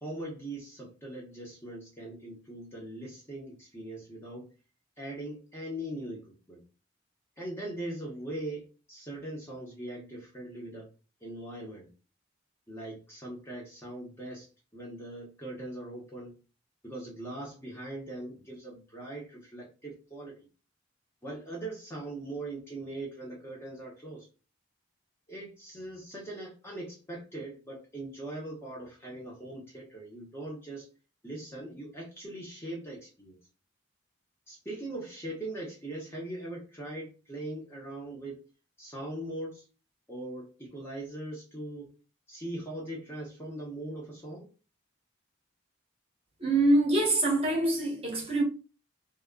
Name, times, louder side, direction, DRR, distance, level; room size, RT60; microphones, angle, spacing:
voice 1, 0.0-4.5 5.0-6.6 7.4-10.9 11.2-11.9 12.7-16.4 16.8-20.3 21.2-24.3 25.3-30.9 31.2-33.4 34.5-38.4 38.8-39.6 40.1-41.9 42.3-44.5, right 1 dB, 10° left, 0.6 m, -40 dB
voice 2, 46.4-48.4, right 2 dB, 30° right, 0.8 m, -25 dB
2.2 x 2.0 x 3.5 m
head